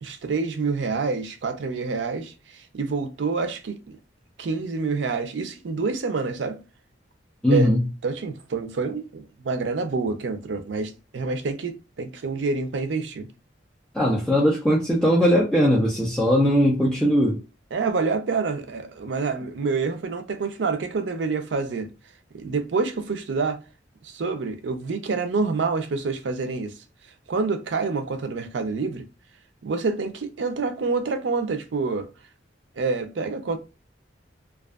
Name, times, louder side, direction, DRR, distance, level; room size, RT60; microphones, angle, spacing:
voice 1, 0.0-4.0 4.4-6.6 7.5-7.7 8.0-13.3 17.7-21.9 22.3-23.6 24.0-26.7 27.3-29.0 29.6-32.1 32.8-33.6, right 4 dB, 75° right, 0.5 m, -27 dB
voice 2, 7.4-7.8 13.9-17.4, equal, 5° left, 0.5 m, -19 dB
2.5 x 2.3 x 2.3 m
head